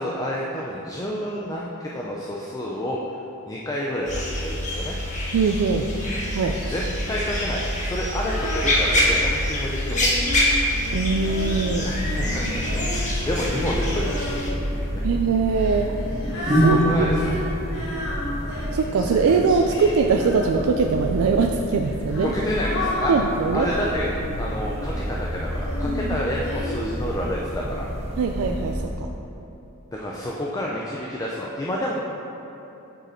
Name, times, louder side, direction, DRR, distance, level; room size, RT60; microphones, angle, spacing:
voice 1, 0.0-3.0 3.5-5.0 6.6-10.1 11.8-15.0 16.4-17.2 22.2-23.1 23.5-24.1 24.4-27.9 29.9-31.9, equal, 15° left, -3 dB, 0.4 m, -29 dB
sound 1, 4.1-14.5, left 1 dB, 35° left, 1.2 m, -25 dB
voice 2, 5.3-5.9 6.3-6.6 10.9-12.0 15.0-16.0 16.4-17.1 18.7-22.3 23.1-23.7 28.2-29.1, right 5 dB, 70° right, 3 dB, 0.3 m, -22 dB
Female singing, 8.3-9.3 9.9-14.7 15.5-21.0 21.8-24.9 25.6-26.7, left 1 dB, 55° left, 1.4 m, -32 dB
sound 2, 11.2-28.8, equal, 30° right, 1.0 m, -29 dB
6.5 x 5.2 x 4.3 m, 3.0 s
head